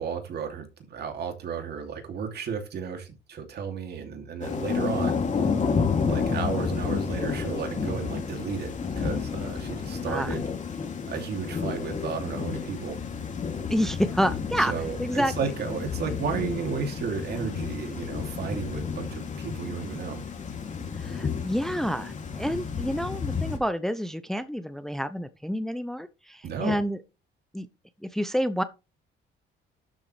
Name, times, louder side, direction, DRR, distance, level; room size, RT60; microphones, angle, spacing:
voice 1, 0.0-5.3 6.0-10.5 11.1-13.0 14.6-20.3 26.4-26.8, right 6 dB, 60° right, 2.8 m, -33 dB
Thunder / Rain, 4.4-23.6, left 5 dB, 40° left, 2.7 m, -31 dB
voice 2, 13.7-14.7 15.0-15.3 21.0-27.0 27.5-27.7 28.0-28.6, equal, ahead, 0.7 m, -28 dB
12.0 x 7.5 x 3.3 m
cardioid pair, 100°, 19 cm